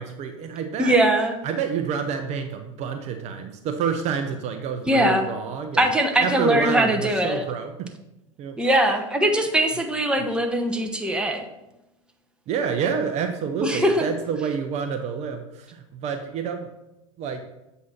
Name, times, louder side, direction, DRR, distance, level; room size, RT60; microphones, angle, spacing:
voice 1, 0.0-0.9 1.4-5.9 6.2-7.9 8.4-8.6 12.5-16.7 17.2-17.4, right 6 dB, 40° right, 6 dB, 0.6 m, -28 dB
voice 2, 0.8-1.4 4.9-5.3 5.8-7.4 8.6-11.4 13.6-14.0, right 1 dB, 5° right, 3 dB, 0.9 m, -21 dB
7.6 x 2.8 x 5.7 m, 0.93 s
hypercardioid pair, 90°, 17 cm